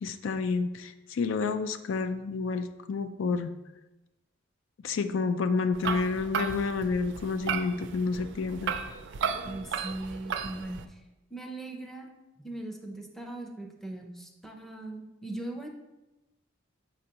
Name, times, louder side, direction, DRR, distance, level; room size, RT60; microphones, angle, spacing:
voice 1, 0.0-3.5 4.8-8.7, left 4 dB, 75° left, 10 dB, 0.4 m, -29 dB
sound 1, 5.7-10.8, right 6 dB, 65° right, 0.4 m, -34 dB
voice 2, 9.4-11.0 11.3-12.1 12.4-15.7, right 2 dB, ahead, 1 dB, 0.6 m, -39 dB
6.4 x 5.2 x 2.8 m, 1.0 s
head